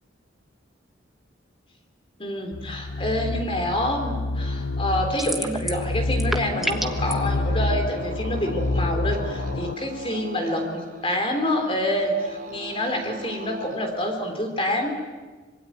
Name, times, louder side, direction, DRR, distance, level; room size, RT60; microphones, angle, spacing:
voice 1, 2.2-14.9, left 1 dB, 30° left, 4 dB, 3.7 m, -27 dB
sound 1, 2.5-9.7, left 2 dB, 70° left, 0.8 m, -28 dB
sound 2, 5.2-5.9 6.1-7.1, right 1 dB, ahead, 1.4 m, -28 dB
sound 3, 7.0-13.8, right 1 dB, 45° right, 4.2 m, -41 dB
25.5 x 22.0 x 9.5 m, 1.3 s
head